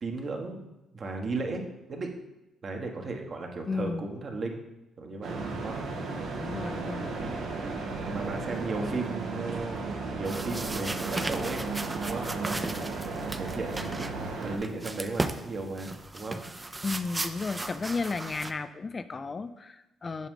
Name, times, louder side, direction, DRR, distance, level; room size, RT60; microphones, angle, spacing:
voice 1, 0.0-2.1 2.6-4.6 5.0-5.8 8.0-11.6 12.0-12.9 13.4-14.1 14.4-16.4, right 3 dB, 45° right, 2 dB, 1.4 m, -35 dB
voice 2, 3.7-4.0 6.4-7.4 16.8-20.3, left 4 dB, 35° left, 11 dB, 0.4 m, -34 dB
sound 1, 5.2-14.6, right 3 dB, 80° right, 1.4 m, -34 dB
sound 2, 10.3-18.5, right 2 dB, 20° right, 0.5 m, -36 dB
8.1 x 6.1 x 3.8 m, 0.95 s
cardioid pair, 90°, 0 cm